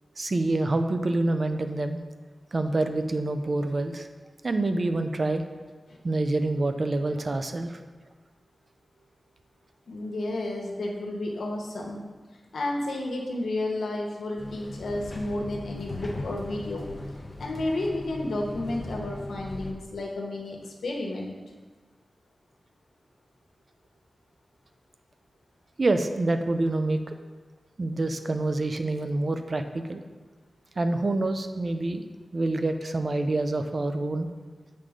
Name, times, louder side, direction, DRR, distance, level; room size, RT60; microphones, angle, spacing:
voice 1, 0.2-2.0 2.5-4.1 4.4-5.4 6.0-7.8 25.8-27.0 27.8-30.0 30.8-32.0 32.3-34.3, right 2 dB, 50° right, 7 dB, 0.5 m, -26 dB
voice 2, 9.9-12.0 12.5-16.9 17.4-21.3, left 2 dB, 90° left, 0 dB, 1.1 m, -31 dB
sound 1, 14.4-19.7, left 1 dB, 35° left, 0.9 m, -38 dB
7.6 x 3.7 x 5.0 m, 1.4 s
wide cardioid pair, 75°, 0 cm